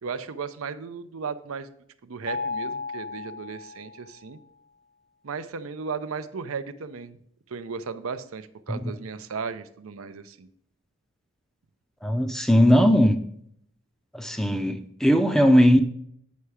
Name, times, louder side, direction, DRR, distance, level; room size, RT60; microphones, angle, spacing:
voice 1, 0.0-1.7 2.0-4.4 5.2-7.2 7.5-10.5, right 5 dB, 75° right, 0.6 m, -35 dB
Mallet percussion, 2.3-4.2, left 4 dB, 55° left, 0.7 m, -34 dB
voice 2, 12.0-13.2 14.1-15.8, equal, ahead, 0.4 m, -19 dB
8.3 x 5.6 x 4.8 m
head